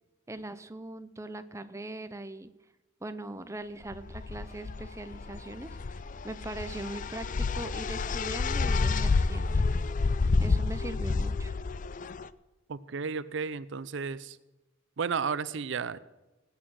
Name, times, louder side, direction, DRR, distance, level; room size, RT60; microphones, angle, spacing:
voice 1, 0.3-2.5 3.0-9.5 10.4-11.6, right 2 dB, 15° right, 10 dB, 0.6 m, -41 dB
sound 1, 3.9-12.3, left 4 dB, 40° left, 0.4 m, -29 dB
voice 2, 12.7-14.4 15.0-16.0, right 5 dB, 65° right, 17 dB, 0.5 m, -33 dB
18.5 x 8.5 x 6.3 m, 1.1 s
head